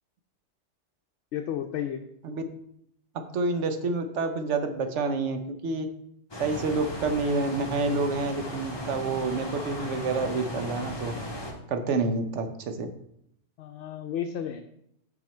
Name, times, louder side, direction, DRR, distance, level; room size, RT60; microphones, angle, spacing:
voice 1, 1.3-2.0 13.6-14.6, left 9 dB, 75° left, 4 dB, 0.9 m, -32 dB
voice 2, 3.3-5.9 6.4-11.1 11.7-12.9, right 3 dB, 85° right, 7 dB, 1.1 m, -28 dB
sound 1, 6.3-11.5, left 1 dB, 25° left, 1.2 m, -36 dB
6.1 x 5.9 x 4.3 m, 0.74 s
omnidirectional pair, 1.2 m